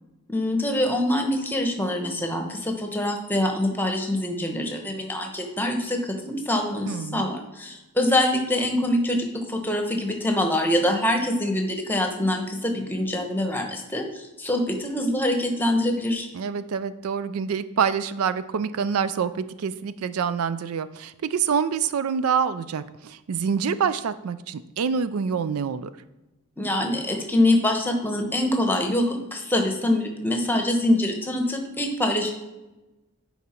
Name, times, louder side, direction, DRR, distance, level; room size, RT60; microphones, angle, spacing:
voice 1, 0.3-16.3 26.6-32.3, left 1 dB, 10° left, 3 dB, 0.9 m, -24 dB
voice 2, 6.9-7.3 16.3-25.9, right 6 dB, 85° right, 14 dB, 0.4 m, -26 dB
9.9 x 4.1 x 4.4 m, 1.1 s
head